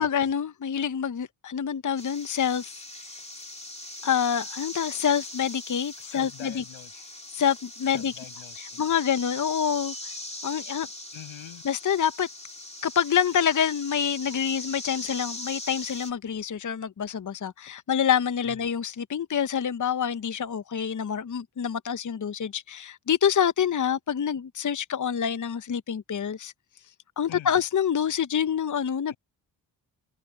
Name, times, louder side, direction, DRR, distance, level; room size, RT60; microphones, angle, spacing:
voice 1, 0.0-2.8 4.0-6.6 7.3-8.1 8.6-10.1 10.4-10.9 11.6-12.3 12.8-26.5 27.2-29.1, left 8 dB, 40° left, 1.0 m, -27 dB
sound 1, 2.0-16.1, left 1 dB, 15° left, 3.2 m, -40 dB
voice 2, 6.0-7.1 7.9-9.0 11.1-11.6 18.4-18.6 27.3-27.6 29.1-29.2, left 13 dB, 90° left, 7.7 m, -45 dB
supercardioid pair, 40°, 46 cm